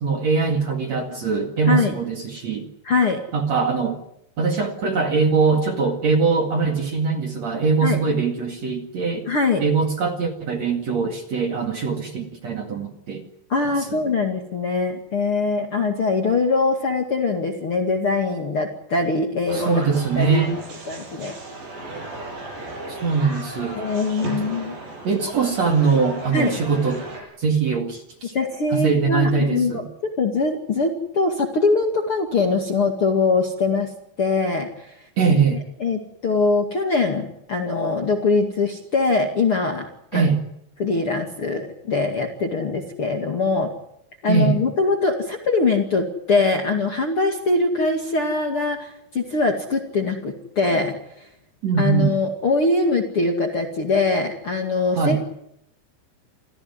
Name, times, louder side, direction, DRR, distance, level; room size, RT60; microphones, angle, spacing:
voice 1, 0.0-2.7 3.3-4.0 4.4-9.3 9.6-13.2 13.9-14.0 19.5-20.6 22.9-23.8 24.2-24.5 25.0-27.0 27.4-28.3 28.7-29.9 35.2-35.6 40.1-40.4 44.3-44.6 51.6-52.1 54.9-55.2, right 5 dB, 45° right, 4 dB, 2.7 m, -22 dB
voice 2, 2.8-3.2 7.8-8.0 9.3-9.6 13.5-19.8 20.2-20.4 20.9-21.3 23.7-24.7 26.3-26.5 28.3-33.9 34.2-34.9 35.8-39.9 40.1-40.3 40.8-43.7 44.2-51.0 51.8-55.2, left 3 dB, 40° left, 3 dB, 2.3 m, -22 dB
sound 1, 19.5-27.2, right 2 dB, 70° right, 9.0 m, -35 dB
28.0 x 15.5 x 9.7 m, 0.77 s
omnidirectional pair, 5.2 m